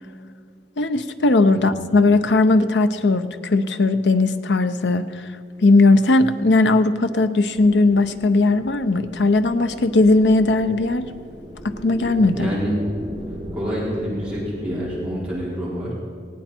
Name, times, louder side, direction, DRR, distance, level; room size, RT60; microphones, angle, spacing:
voice 1, 0.8-5.0 5.6-11.1 11.6-12.5, left 2 dB, 90° left, 10 dB, 0.7 m, -18 dB
sound 1, 7.5-15.2, equal, 30° right, 2.6 m, -37 dB
voice 2, 12.3-12.7 13.5-16.0, equal, 5° right, -9 dB, 4.6 m, -27 dB
19.0 x 17.0 x 4.5 m, 2.3 s
head